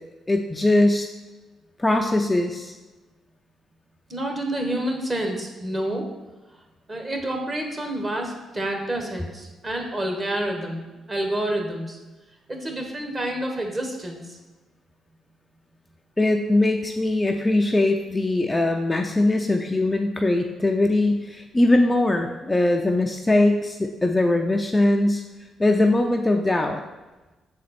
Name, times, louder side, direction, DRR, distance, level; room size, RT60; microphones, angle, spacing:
voice 1, 0.3-1.1 1.8-2.7 16.2-25.2 25.6-26.8, left 2 dB, 15° left, 3 dB, 0.4 m, -21 dB
voice 2, 4.1-6.0 6.9-12.0 12.5-14.4, right 1 dB, 25° right, 2 dB, 1.3 m, -28 dB
6.5 x 4.3 x 4.1 m, 1.2 s
cardioid pair, 90°, 0 cm